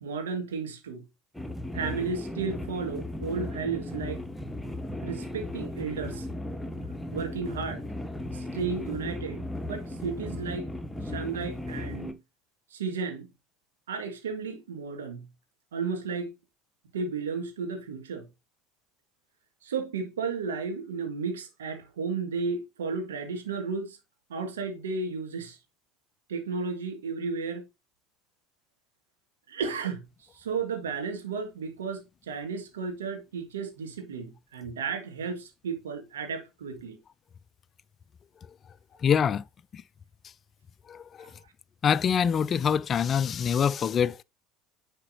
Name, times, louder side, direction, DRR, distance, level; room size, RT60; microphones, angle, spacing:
voice 1, 0.0-1.0 1.7-4.2 5.0-6.3 7.1-7.8 8.3-10.7 11.0-12.2 12.7-13.3 13.9-15.3 15.7-16.3 16.9-18.3 19.6-24.0 24.3-25.6 26.3-27.6 29.5-30.0 30.3-37.0, right 5 dB, 70° right, 1.6 m, -33 dB
sound 1, 1.3-12.1, left 1 dB, 5° left, 1.2 m, -36 dB
voice 2, 39.0-39.4 39.7-39.8 40.9-41.3 41.8-44.2, left 7 dB, 35° left, 0.3 m, -25 dB
9.8 x 5.1 x 2.6 m
figure-of-eight pair, 70°, 0 cm